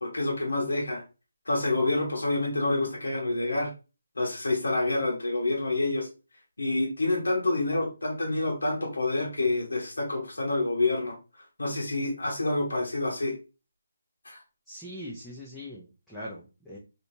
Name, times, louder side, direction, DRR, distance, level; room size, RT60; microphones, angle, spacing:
voice 1, 0.0-1.0 1.5-3.7 4.2-6.1 6.6-11.2 11.6-13.3 14.2-14.4, left 2 dB, 90° left, -2 dB, 1.2 m, -27 dB
voice 2, 14.7-16.8, equal, 5° left, -9 dB, 0.6 m, -41 dB
3.2 x 2.9 x 2.7 m, 0.30 s
hypercardioid pair, 165°, 0 cm